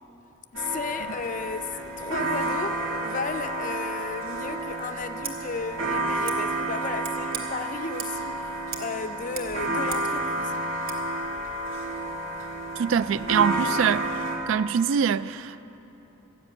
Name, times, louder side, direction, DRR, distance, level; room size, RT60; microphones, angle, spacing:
voice 1, 0.5-10.6, left 5 dB, 40° left, 0.4 m, -34 dB
sound 1, 0.5-14.4, right 2 dB, 85° right, 1.8 m, -30 dB
Scissors, 5.1-5.4 6.2-6.4 7.0-7.4 8.0-8.3 8.7-8.9 9.2-10.1 10.8-11.0, right 6 dB, 50° right, 1.4 m, -37 dB
voice 2, 12.8-15.6, right 7 dB, 70° right, 0.3 m, -24 dB
14.0 x 7.5 x 9.4 m
head